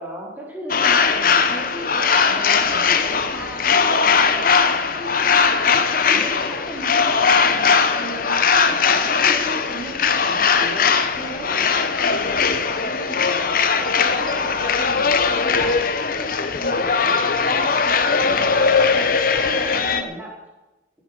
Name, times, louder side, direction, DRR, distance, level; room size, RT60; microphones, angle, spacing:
voice 1, 0.0-4.6 4.9-13.5 13.8-15.8 16.2-20.3, right 1 dB, 10° right, -4 dB, 4.1 m, -36 dB
sound 1, 0.7-20.0, left 5 dB, 50° left, 0.9 m, -19 dB
16.0 x 10.5 x 5.8 m, 1.1 s
head